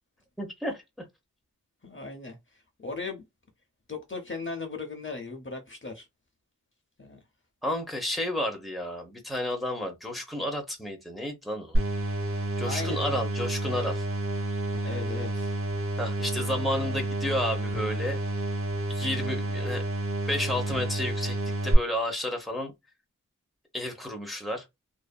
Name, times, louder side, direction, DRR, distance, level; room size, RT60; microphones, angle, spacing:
voice 1, 0.4-1.0 7.6-11.8 12.6-14.1 16.0-18.2 18.9-19.8 20.3-21.4 21.6-22.7 23.7-24.6, left 1 dB, ahead, 0.8 m, -31 dB
voice 2, 1.8-3.2 3.9-6.1 7.0-7.2 12.6-13.2 14.8-15.5, left 3 dB, 35° left, 0.6 m, -37 dB
sound 1, 11.7-21.7, right 1 dB, 40° right, 1.3 m, -30 dB
2.6 x 2.5 x 2.2 m
wide cardioid pair, 65°, 32 cm